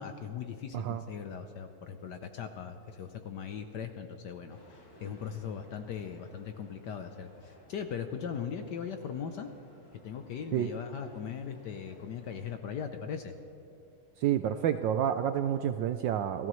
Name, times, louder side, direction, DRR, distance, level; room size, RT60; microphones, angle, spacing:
voice 1, 0.0-9.5 10.0-13.3, left 7 dB, 65° left, 7 dB, 1.1 m, -39 dB
sound 1, 4.5-12.5, equal, 85° left, 5.0 m, -58 dB
voice 2, 14.2-16.5, right 10 dB, 75° right, 9 dB, 1.1 m, -29 dB
29.0 x 14.5 x 3.1 m, 2.7 s
omnidirectional pair, 2.4 m